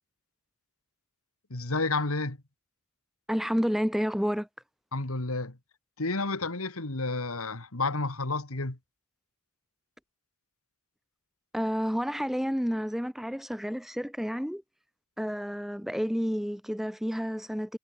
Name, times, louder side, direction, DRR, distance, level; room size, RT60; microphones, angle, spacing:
voice 1, 1.5-2.4 4.9-5.6 6.0-8.8, left 3 dB, 85° left, 2.4 m, -30 dB
voice 2, 3.3-4.5 11.5-14.6 15.2-17.8, equal, ahead, 0.8 m, -30 dB
head